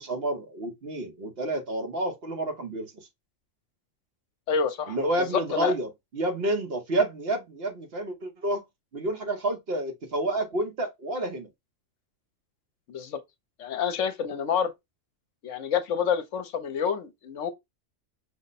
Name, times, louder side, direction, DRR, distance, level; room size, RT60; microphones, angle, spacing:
voice 1, 0.0-3.1 4.9-8.6 8.9-11.5, right 1 dB, 50° right, 1.1 m, -29 dB
voice 2, 4.5-5.0 5.3-5.7 12.9-13.2 13.6-14.7 15.4-17.5, left 7 dB, 70° left, 1.0 m, -28 dB
5.2 x 2.1 x 4.0 m
omnidirectional pair, 1.4 m